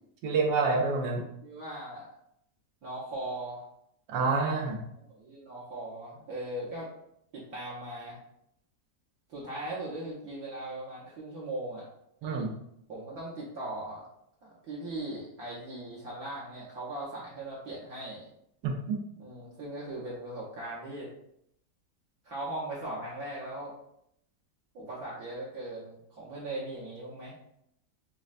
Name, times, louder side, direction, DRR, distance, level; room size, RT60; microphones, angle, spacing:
voice 1, 0.2-1.2 4.1-4.8 12.2-12.5 18.6-19.0, right 4 dB, 90° right, 1 dB, 1.3 m, -27 dB
voice 2, 1.4-2.1 2.8-3.6 5.1-6.9 7.3-8.2 9.3-11.9 12.9-14.1 14.4-18.3 19.2-21.1 22.2-23.7 24.7-27.3, right 1 dB, 65° right, -7 dB, 1.2 m, -39 dB
5.1 x 2.1 x 2.4 m, 0.75 s
omnidirectional pair, 1.8 m